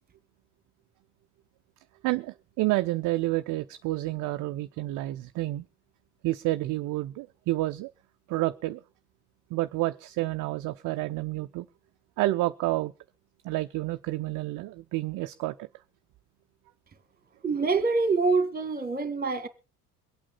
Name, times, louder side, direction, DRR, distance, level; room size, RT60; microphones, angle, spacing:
voice 1, 2.0-5.6 6.2-7.9 8.3-8.8 9.5-11.7 12.2-12.9 13.4-15.7, right 18 dB, 40° right, 0.6 m, -29 dB
voice 2, 17.4-19.5, right 4 dB, 20° right, 1.8 m, -25 dB
23.0 x 8.6 x 4.1 m
figure-of-eight pair, 65°, 47 cm